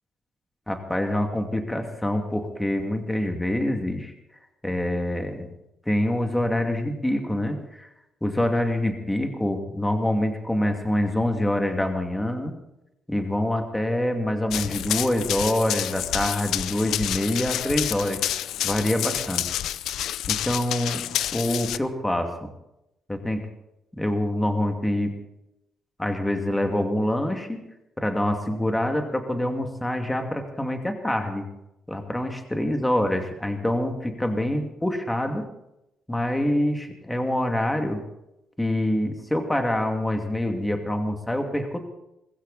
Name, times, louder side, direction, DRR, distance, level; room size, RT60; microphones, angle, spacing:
voice 1, 0.7-4.1 4.6-5.5 5.9-7.9 8.2-12.6 13.1-18.2 18.6-19.5 20.3-21.0 21.3-22.5 23.1-23.4 24.0-25.2 26.0-27.6 28.0-31.4 31.9-35.5 36.1-38.0 38.6-41.8, left 1 dB, 10° left, 4 dB, 2.6 m, -25 dB
Run, 14.5-21.8, left 12 dB, 80° left, 0.6 m, -29 dB
21.0 x 15.5 x 4.2 m, 0.86 s
cardioid pair, 90°, 0 cm